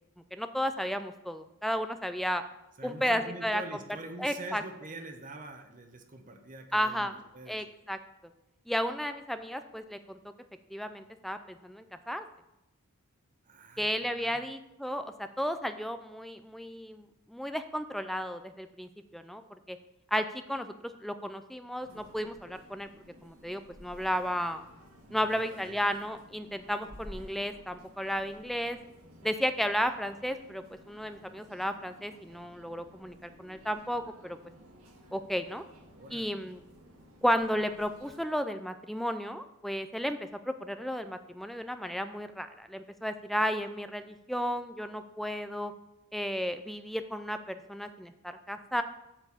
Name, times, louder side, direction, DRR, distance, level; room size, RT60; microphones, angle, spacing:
voice 1, 0.3-2.4 2.8-3.6 4.2-4.6 6.7-7.1 7.5-8.0 8.7-10.2 10.7-12.2 13.8-19.8 20.1-22.9 23.2-24.6 25.1-28.8 29.2-34.4 35.1-35.6 36.1-36.6 37.2-45.7 46.1-48.8, equal, ahead, 9 dB, 0.4 m, -33 dB
voice 2, 2.8-7.6 13.4-14.4 25.0-25.9 35.9-36.3, right 2 dB, 35° right, 5 dB, 1.0 m, -45 dB
sound 1, 21.8-38.2, equal, 75° right, 1.9 m, -54 dB
8.9 x 4.5 x 7.0 m, 0.90 s
head